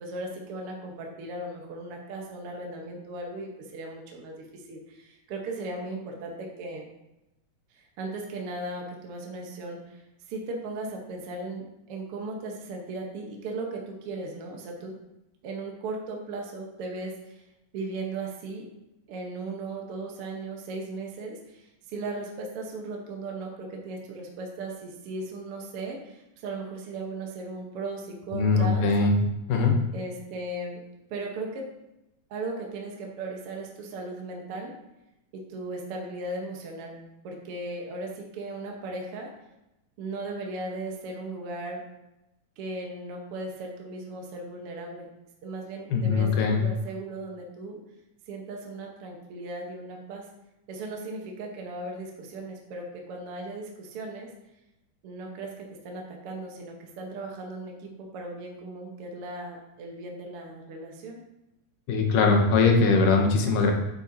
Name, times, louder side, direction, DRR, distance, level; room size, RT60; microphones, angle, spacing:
voice 1, 0.0-6.8 7.7-10.0 10.3-15.0 15.4-17.4 17.7-18.7 19.1-28.9 29.9-30.8 31.1-31.7 32.3-34.7 35.3-37.0 37.2-39.3 40.0-41.8 42.6-45.1 45.4-47.8 48.3-50.2 50.7-54.3 55.0-61.2, right 2 dB, 65° right, 1 dB, 1.5 m, -37 dB
voice 2, 28.3-29.2 29.5-29.8 45.9-46.7 61.9-63.7, left 4 dB, 80° left, 2 dB, 2.6 m, -21 dB
9.3 x 8.3 x 2.7 m, 0.93 s
omnidirectional pair, 3.8 m